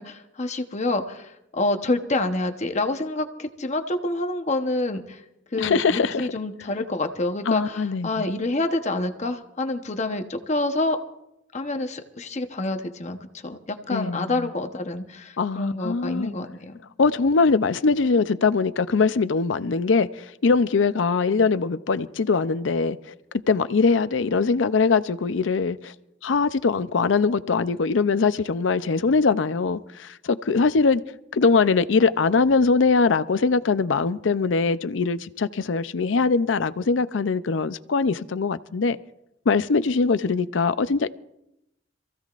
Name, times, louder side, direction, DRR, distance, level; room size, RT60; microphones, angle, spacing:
voice 1, 0.0-5.2 5.5-11.0 11.5-16.8, left 2 dB, 40° left, 1.0 m, -27 dB
voice 2, 5.6-6.2 7.5-8.1 13.9-14.3 15.4-16.3 17.0-23.2 23.5-25.9 26.2-31.0 31.3-39.0 39.5-41.1, left 4 dB, 85° left, 0.5 m, -22 dB
27.0 x 15.5 x 2.5 m
head